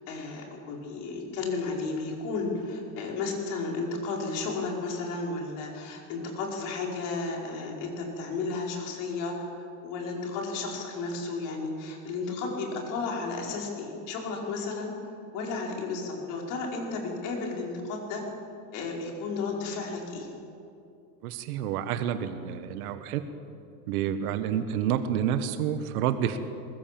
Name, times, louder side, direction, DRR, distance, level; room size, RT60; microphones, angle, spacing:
voice 1, 0.1-9.5 9.8-14.9 15.3-18.2 18.7-20.3, left 3 dB, 40° left, 0 dB, 5.0 m, -33 dB
voice 2, 21.2-23.2 23.9-26.4, right 9 dB, 70° right, 9 dB, 1.6 m, -29 dB
23.0 x 22.0 x 7.6 m, 2.6 s
supercardioid pair, 175°, 46 cm